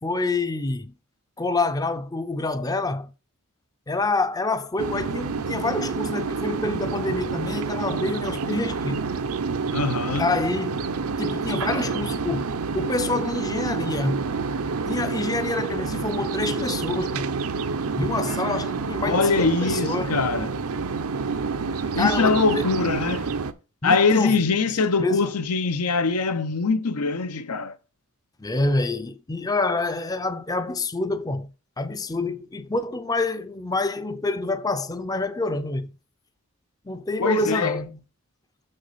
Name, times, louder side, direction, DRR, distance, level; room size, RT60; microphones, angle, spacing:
voice 1, 0.0-0.9 1.4-3.1 3.9-9.1 10.2-10.8 11.2-14.3 14.9-17.3 17.7-20.2 22.0-22.7 23.8-24.4 25.0-25.3 28.4-31.5 31.8-35.9 36.9-38.0, left 2 dB, 15° left, 0.5 m, -27 dB
sound 1, 4.8-23.5, right 4 dB, 70° right, 0.7 m, -28 dB
voice 2, 9.7-10.2 19.0-20.5 21.9-23.3 23.8-27.7 37.2-37.8, left 4 dB, 85° left, 0.8 m, -23 dB
6.6 x 6.4 x 4.0 m
head